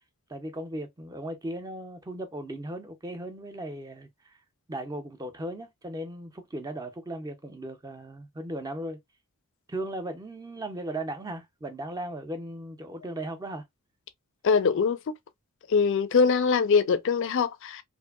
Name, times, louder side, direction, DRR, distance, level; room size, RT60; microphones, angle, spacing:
voice 1, 0.3-4.1 4.7-9.0 9.7-13.6, right 1 dB, 15° right, 0.5 m, -37 dB
voice 2, 14.4-15.2 15.7-17.8, left 5 dB, 55° left, 0.4 m, -23 dB
2.7 x 2.5 x 2.3 m
head